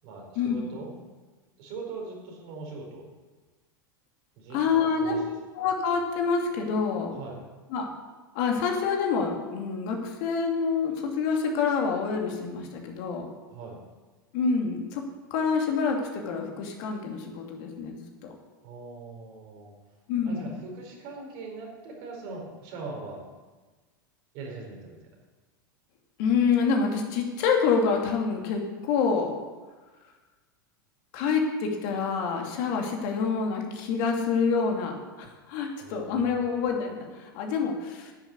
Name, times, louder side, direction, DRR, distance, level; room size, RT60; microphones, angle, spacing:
voice 1, 0.0-1.2 1.6-3.1 4.4-5.3 7.1-7.4 13.5-13.8 18.6-19.7 20.2-23.2 24.3-25.0 35.8-36.4, right 3 dB, 55° right, 0 dB, 4.3 m, -41 dB
voice 2, 4.5-5.2 5.5-7.1 7.7-7.9 8.3-13.3 14.3-15.0 15.3-18.0 18.2-18.3 20.1-20.5 26.2-28.6 28.9-29.3 31.1-38.1, left 5 dB, 60° left, 1 dB, 2.5 m, -27 dB
10.0 x 7.6 x 8.4 m, 1.3 s
hypercardioid pair, 100°, 11 cm